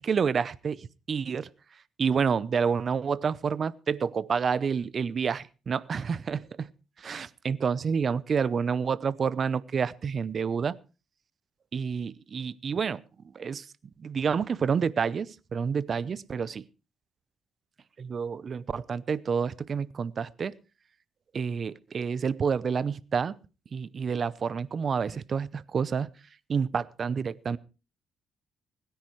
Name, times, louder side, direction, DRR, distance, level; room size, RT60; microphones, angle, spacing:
voice 1, 0.0-1.5 2.0-6.7 7.0-10.8 11.7-13.0 13.3-13.7 14.0-16.7 18.0-20.6 21.3-23.3 23.7-26.1 26.5-27.6, right 6 dB, 45° right, 20 dB, 0.6 m, -29 dB
25.5 x 10.0 x 3.1 m, 0.33 s
cardioid pair, 90°, 0 cm